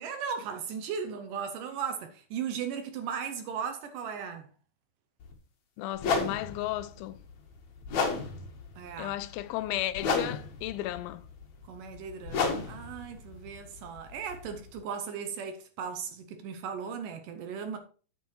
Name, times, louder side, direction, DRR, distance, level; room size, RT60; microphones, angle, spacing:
voice 1, 0.0-4.5 8.8-9.2 11.7-17.8, right 7 dB, 75° right, 2.2 m, -37 dB
sound 1, 5.2-5.3 6.0-14.8, left 4 dB, 55° left, 2.4 m, -34 dB
voice 2, 5.8-7.2 9.0-11.3, left 15 dB, 80° left, 2.3 m, -34 dB
10.0 x 7.9 x 3.1 m
omnidirectional pair, 4.3 m